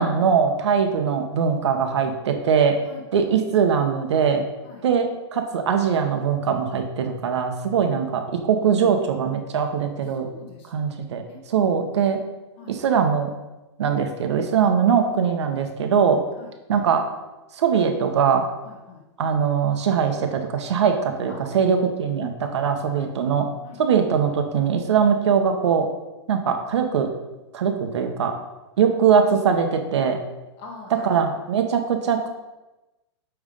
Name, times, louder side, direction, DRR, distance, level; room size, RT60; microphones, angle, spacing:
voice 1, 0.0-2.8 3.1-4.4 4.8-10.3 10.7-11.2 11.5-12.2 12.7-13.3 13.8-16.2 16.7-17.1 17.6-18.5 19.2-23.5 23.8-25.9 26.3-27.1 27.5-28.3 28.8-30.2 30.9-32.3, right 7 dB, 75° right, 5 dB, 1.2 m, -21 dB
voice 2, 2.8-3.3 4.6-4.9 10.2-10.8 11.3-11.4 12.6-12.8 16.4-16.5 18.6-19.0 21.3-22.4 22.9-23.1 23.6-23.8 30.6-31.3, left 4 dB, 40° left, 0 dB, 2.0 m, -44 dB
8.9 x 3.6 x 5.2 m, 1.0 s
hypercardioid pair, 130°, 15 cm